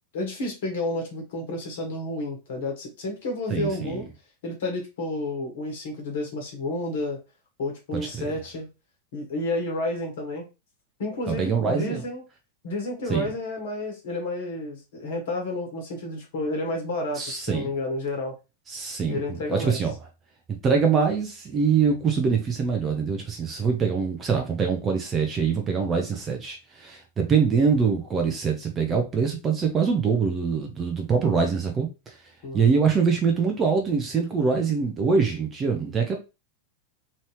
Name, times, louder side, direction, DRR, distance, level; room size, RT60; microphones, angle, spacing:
voice 1, 0.1-4.1 4.4-7.2 7.6-8.7 9.1-10.5 11.0-12.2 12.6-18.4 19.1-19.8 32.4-32.7, left 2 dB, 55° left, 1.3 m, -30 dB
voice 2, 3.5-4.0 8.2-8.3 11.3-12.1 13.1-13.3 17.2-17.7 18.7-19.2 19.5-19.9 20.6-32.2 32.5-36.2, right 5 dB, 20° right, 0.7 m, -24 dB
3.1 x 2.7 x 3.1 m
figure-of-eight pair, 90°, 0 cm